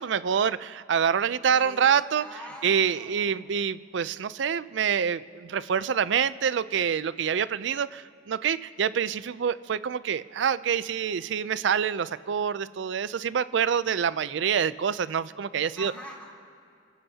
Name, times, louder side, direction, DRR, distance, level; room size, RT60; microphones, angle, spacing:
voice 1, 0.0-2.2 2.6-15.9, right 7 dB, 65° right, 16 dB, 0.4 m, -26 dB
voice 2, 1.5-1.8 2.2-3.5 15.7-16.3, equal, 10° left, -5 dB, 3.4 m, -44 dB
29.0 x 14.0 x 2.8 m, 2.5 s
head